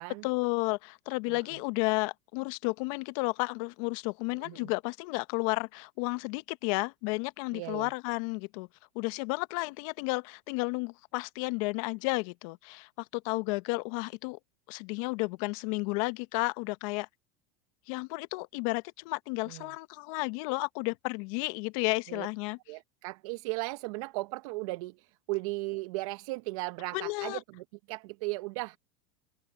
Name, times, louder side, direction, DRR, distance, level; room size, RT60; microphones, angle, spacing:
voice 1, 0.2-8.7 8.9-14.4 14.7-17.1 17.9-22.6 26.9-27.4, left 27 dB, 65° left, 1.0 m, -32 dB
voice 2, 7.5-7.9 19.4-19.7 22.1-22.3 22.7-28.8, right 23 dB, 70° right, 0.9 m, -36 dB
open air
supercardioid pair, 110°, 18 cm